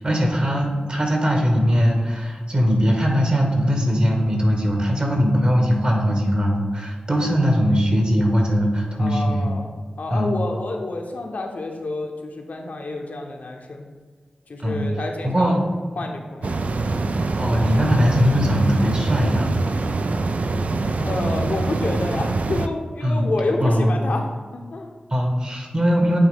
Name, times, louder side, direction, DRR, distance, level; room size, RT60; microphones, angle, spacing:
voice 1, 0.0-9.5 10.1-10.3 14.6-14.8 15.2-15.6 17.4-19.5 23.0-23.3 23.6-23.9 25.1-26.2, equal, 40° right, 1 dB, 1.4 m, -20 dB
voice 2, 9.0-9.7 10.0-13.9 14.5-15.6 16.0-16.6 21.0-24.9, left 2 dB, 75° left, 2 dB, 0.8 m, -29 dB
sound 1, 16.4-22.7, right 3 dB, 60° right, 0.3 m, -24 dB
8.8 x 3.1 x 3.5 m, 1.5 s
cardioid pair, 50°, 3 cm